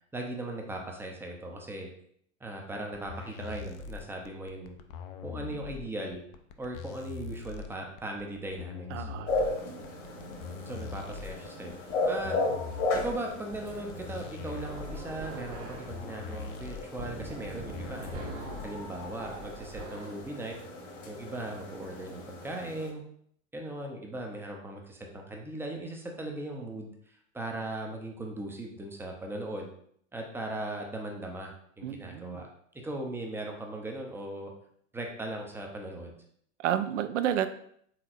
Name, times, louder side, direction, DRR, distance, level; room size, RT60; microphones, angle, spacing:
voice 1, 0.1-1.9 2.4-4.8 5.2-6.2 6.6-9.1 10.7-12.4 12.9-20.6 21.1-23.0 23.5-29.7 30.1-32.5 32.8-34.5 34.9-36.1, right 1 dB, 5° right, 1 dB, 0.5 m, -38 dB
sound 1, 2.9-18.9, left 5 dB, 45° left, 0.5 m, -42 dB
voice 2, 8.9-9.7 31.8-32.5 36.6-37.5, right 10 dB, 65° right, 12 dB, 0.5 m, -31 dB
sound 2, 9.3-22.9, left 2 dB, 60° left, 1.4 m, -36 dB
sound 3, 13.5-20.3, right 3 dB, 35° right, 0.9 m, -44 dB
4.3 x 3.6 x 2.5 m, 0.65 s
figure-of-eight pair, 95°, 40 cm